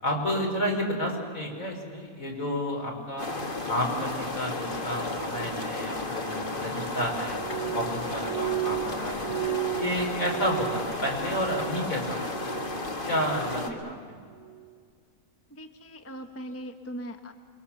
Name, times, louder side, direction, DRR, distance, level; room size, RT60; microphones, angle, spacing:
voice 1, 0.0-3.3 3.7-7.4 7.7-9.4 9.7-12.6 13.1-14.1, equal, 65° left, 0 dB, 5.0 m, -31 dB
sound 1, 3.2-13.7, left 2 dB, 35° left, 1.9 m, -33 dB
Glass, 7.4-12.0 12.2-12.9 13.3-13.8 14.4-14.7, right 19 dB, 45° right, 1.0 m, -34 dB
voice 2, 13.7-14.0 15.5-17.3, equal, 10° left, 6 dB, 1.0 m, -40 dB
28.5 x 22.0 x 7.2 m, 2.1 s
omnidirectional pair, 1.5 m